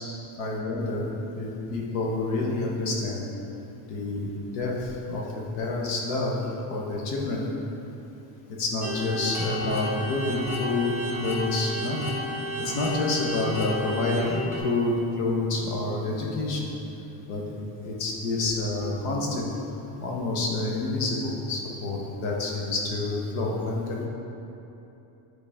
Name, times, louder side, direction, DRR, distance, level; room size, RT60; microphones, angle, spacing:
voice 1, 0.4-1.1 1.3-3.2 3.9-5.2 5.5-6.4 6.7-7.4 8.6-12.0 12.6-16.7 17.3-17.4 17.8-19.5 20.0-24.1, left 2 dB, 85° left, -2 dB, 1.4 m, -28 dB
sound 1, 8.8-14.6, equal, 5° right, 0.7 m, -32 dB
9.7 x 4.0 x 3.6 m, 2.9 s
cardioid pair, 175°, 46 cm